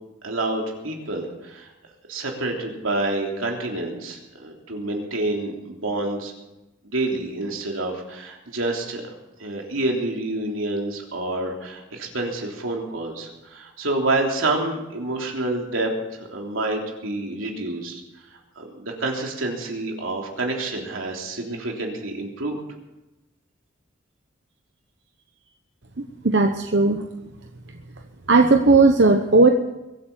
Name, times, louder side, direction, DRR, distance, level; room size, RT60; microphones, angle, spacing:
voice 1, 0.2-1.7 2.1-6.3 6.8-9.0 9.4-18.0 18.6-22.6, right 2 dB, 85° right, 0 dB, 3.4 m, -28 dB
voice 2, 26.2-27.0 28.3-29.5, right 3 dB, 60° right, 5 dB, 0.9 m, -16 dB
22.5 x 8.7 x 7.3 m, 0.99 s
head